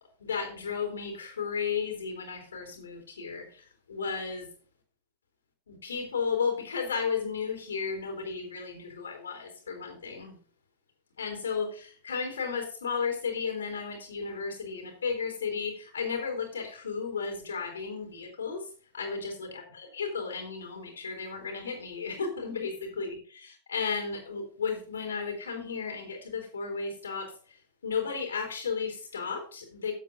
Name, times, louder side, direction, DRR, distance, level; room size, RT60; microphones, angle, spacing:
voice 1, 0.2-4.5 5.7-10.4 11.2-29.9, left 5 dB, 70° left, 3 dB, 3.4 m, -34 dB
7.7 x 7.5 x 5.1 m, 0.41 s
figure-of-eight pair, 90°, 0 cm